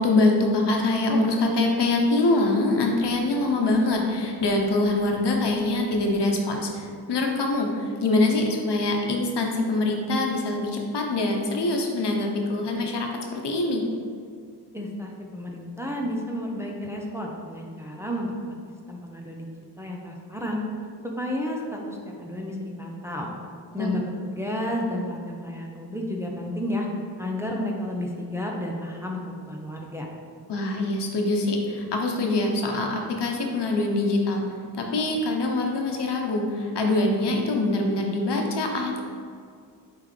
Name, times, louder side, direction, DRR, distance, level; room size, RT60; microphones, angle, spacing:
voice 1, 0.0-13.8 23.8-24.0 30.5-34.4 34.7-39.0, left 2 dB, 75° left, 1 dB, 1.0 m, -24 dB
voice 2, 14.7-18.5 18.9-19.5 19.8-20.6 21.0-23.3 23.7-26.9 27.2-30.1, left 1 dB, 5° right, -1 dB, 0.8 m, -31 dB
8.4 x 3.7 x 3.3 m, 2.3 s
cardioid pair, 65°, 41 cm